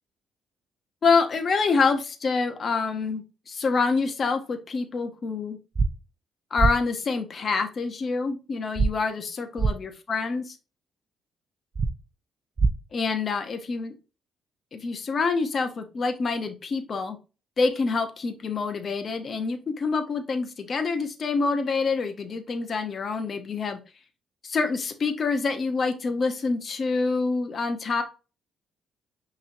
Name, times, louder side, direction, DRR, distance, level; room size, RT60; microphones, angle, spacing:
voice 1, 1.0-5.6 6.5-10.6 12.9-14.0 14.7-17.2 17.6-23.8 24.4-28.0, left 4 dB, 45° left, 7 dB, 0.8 m, -26 dB
sound 1, 5.7-5.9 6.6-6.7 8.8-8.9 9.6-9.7 11.7-11.9 12.6-12.7, right 4 dB, 35° right, 0.4 m, -21 dB
5.5 x 3.1 x 2.6 m, 0.32 s
cardioid pair, 90°, 0 cm